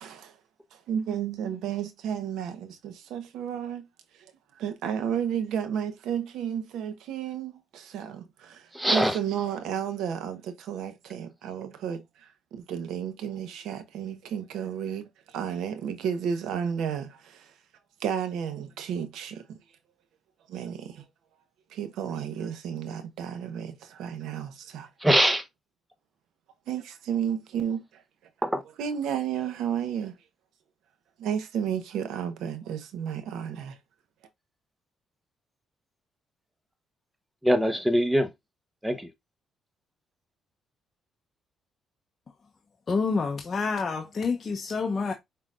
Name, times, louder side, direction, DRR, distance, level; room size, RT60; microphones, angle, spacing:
voice 1, 0.0-0.3 0.7-3.9 4.1-4.2 4.5-17.5 18.0-19.6 20.5-21.0 21.7-24.9 26.7-28.0 28.8-30.2 31.2-33.8, right 8 dB, 85° right, 0.9 m, -32 dB
voice 2, 8.7-9.2 25.0-25.4 28.4-28.6 37.4-38.3 38.8-39.1, equal, 10° right, 1.0 m, -23 dB
voice 3, 42.9-45.1, left 4 dB, 35° left, 0.7 m, -28 dB
5.6 x 3.8 x 2.5 m
cardioid pair, 90°, 0 cm